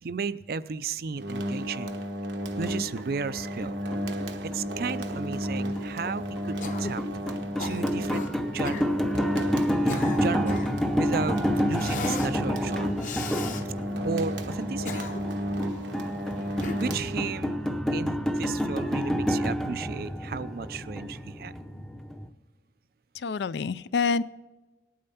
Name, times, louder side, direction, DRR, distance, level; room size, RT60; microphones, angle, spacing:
voice 1, 0.0-2.0 2.6-8.3 8.5-8.8 9.8-10.6 11.0-11.4 11.6-12.9 14.0-15.1 16.8-17.6 17.9-21.6, right 5 dB, 55° right, 15 dB, 0.4 m, -34 dB
sound 1, 1.1-17.6, equal, 80° right, 1.0 m, -33 dB
sound 2, 2.4-22.3, equal, 5° left, 0.6 m, -30 dB
Cough, 6.6-7.0 7.6-8.3 8.6-8.9 9.6-10.8 11.8-12.3 13.0-13.6 14.6-15.4 16.6-17.1, left 3 dB, 45° left, 0.9 m, -37 dB
voice 2, 23.1-24.2, left 5 dB, 70° left, 17 dB, 0.4 m, -27 dB
18.5 x 8.7 x 5.7 m, 1.2 s
head